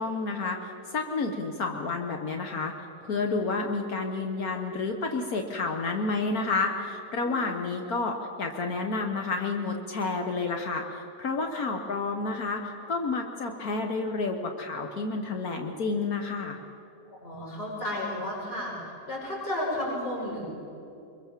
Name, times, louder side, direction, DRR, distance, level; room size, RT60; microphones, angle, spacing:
voice 1, 0.0-2.7 3.0-16.6, left 3 dB, 75° left, 3 dB, 1.8 m, -30 dB
voice 2, 17.1-18.7 19.1-20.4, left 1 dB, 40° left, -5 dB, 6.9 m, -33 dB
24.5 x 22.0 x 7.5 m, 2.8 s
omnidirectional pair, 1.6 m